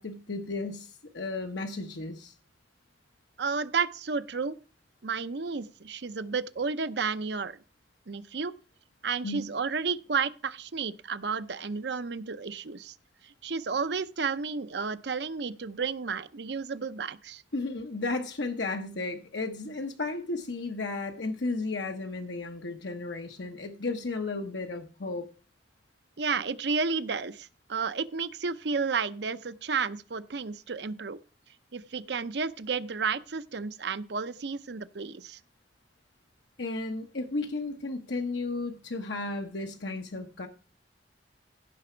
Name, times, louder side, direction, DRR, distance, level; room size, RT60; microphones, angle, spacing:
voice 1, 0.0-2.3 9.2-9.5 17.5-25.2 36.6-40.5, left 3 dB, 80° left, 1.1 m, -34 dB
voice 2, 3.4-4.6 5.0-7.6 8.1-8.5 9.0-12.9 13.2-17.4 26.2-31.2 31.7-35.4, right 5 dB, 70° right, 0.7 m, -32 dB
15.5 x 6.0 x 4.5 m
head